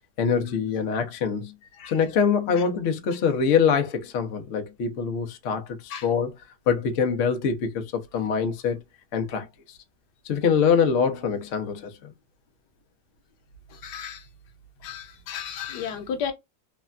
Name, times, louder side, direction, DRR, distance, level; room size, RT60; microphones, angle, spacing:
voice 1, 0.2-1.5 1.9-6.3 6.7-8.8 9.1-9.8 10.2-11.9, left 6 dB, 85° left, 0.6 m, -24 dB
voice 2, 13.7-14.3 14.8-16.3, left 7 dB, 70° left, 1.2 m, -33 dB
3.2 x 2.2 x 2.3 m
omnidirectional pair, 2.0 m